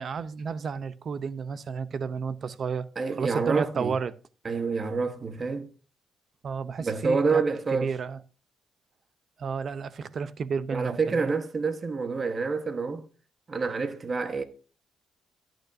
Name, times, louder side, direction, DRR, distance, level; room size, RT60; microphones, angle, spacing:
voice 1, 0.0-2.9 3.2-4.1 6.4-7.4 7.7-8.2 9.4-11.3, right 5 dB, 50° right, 0.6 m, -32 dB
voice 2, 3.0-3.9 4.4-5.7 6.8-7.9 10.7-13.1 13.5-14.4, right 4 dB, 35° right, 1.1 m, -28 dB
12.0 x 9.0 x 2.6 m
cardioid pair, 90°, 0 cm